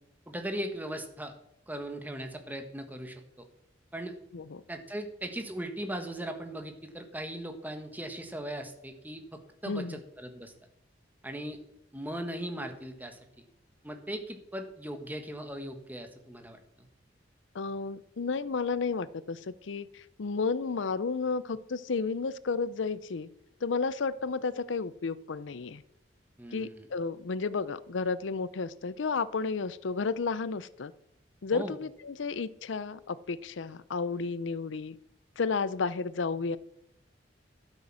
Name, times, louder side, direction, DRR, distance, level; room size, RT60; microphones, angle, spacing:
voice 1, 0.3-1.3 1.7-3.2 3.9-4.1 4.7-10.5 11.2-11.6 11.9-13.2 13.8-16.9 26.4-26.9 31.5-31.8, right 1 dB, 10° right, 5 dB, 1.5 m, -38 dB
voice 2, 9.7-10.0 17.5-23.3 23.6-25.8 26.5-30.9 31.4-35.0 35.4-36.6, left 4 dB, 80° left, 18 dB, 0.6 m, -32 dB
12.5 x 8.4 x 6.1 m, 0.78 s
head